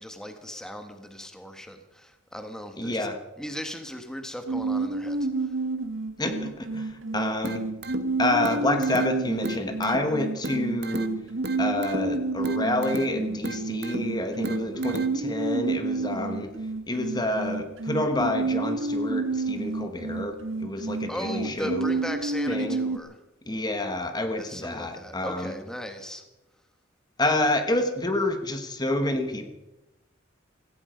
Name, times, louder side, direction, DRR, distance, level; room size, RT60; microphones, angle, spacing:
voice 1, 0.0-3.1 3.4-5.6 21.1-23.2 24.4-26.2, equal, 5° left, 6 dB, 1.4 m, -37 dB
voice 2, 2.8-3.2 6.2-7.6 8.2-11.2 11.6-16.5 16.9-21.9 22.5-22.8 23.4-25.5 27.2-29.4, left 1 dB, 20° left, 6 dB, 1.3 m, -28 dB
sound 1, 4.5-23.0, right 3 dB, 90° right, 1.6 m, -30 dB
sound 2, 7.4-15.4, right 1 dB, 55° right, 1.4 m, -37 dB
17.5 x 16.0 x 5.2 m, 0.98 s
head